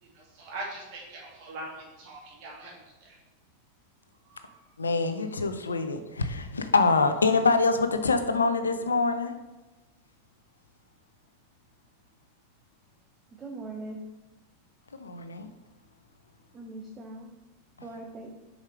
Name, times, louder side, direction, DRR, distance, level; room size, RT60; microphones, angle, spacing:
voice 1, 0.0-3.2 4.2-4.7, right 2 dB, 45° right, -3 dB, 2.3 m, -42 dB
voice 2, 4.8-9.3 14.9-15.5, left 3 dB, 75° left, 9 dB, 0.5 m, -25 dB
voice 3, 13.3-14.0 16.5-17.3 17.8-18.3, right 2 dB, 20° right, 1 dB, 0.8 m, -40 dB
7.2 x 5.0 x 3.4 m, 1.1 s
figure-of-eight pair, 90°, 0 cm